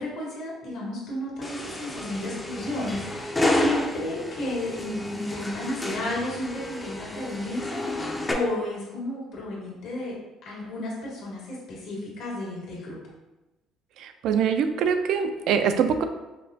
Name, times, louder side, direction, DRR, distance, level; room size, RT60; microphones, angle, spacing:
voice 1, 0.0-10.2 10.4-13.0, left 1 dB, 70° left, -4 dB, 1.4 m, -32 dB
sound 1, 1.4-8.3, left 1 dB, 15° left, 0.4 m, -30 dB
voice 2, 14.0-16.0, right 7 dB, 70° right, 8 dB, 0.4 m, -24 dB
5.1 x 2.2 x 2.7 m, 1.0 s
cardioid pair, 115°, 0 cm